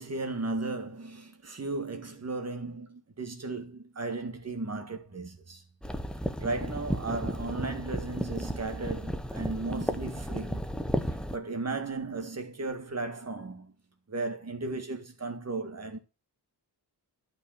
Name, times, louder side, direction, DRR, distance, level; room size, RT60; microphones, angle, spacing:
voice 1, 0.0-5.6 6.4-10.6 11.3-13.7 14.1-16.0, right 3 dB, 40° right, 1.9 m, -35 dB
sound 1, 5.8-11.4, equal, ahead, 0.9 m, -33 dB
12.0 x 5.2 x 6.5 m
wide cardioid pair, 175°, 40 cm